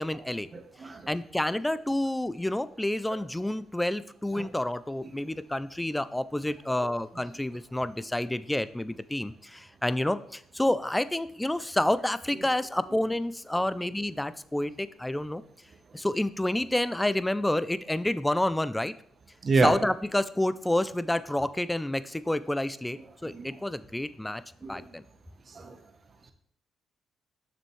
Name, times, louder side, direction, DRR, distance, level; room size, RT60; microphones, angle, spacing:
voice 1, 0.0-0.5 1.1-15.4 15.9-18.9 19.6-24.4 24.7-25.0, left 1 dB, 10° left, 15 dB, 0.4 m, -29 dB
voice 2, 0.5-1.0 19.4-19.7 23.2-23.5 24.6-24.7 25.6-25.8, right 3 dB, 40° right, 7 dB, 1.0 m, -27 dB
6.8 x 6.2 x 3.2 m, 0.66 s
cardioid pair, 90°, 0 cm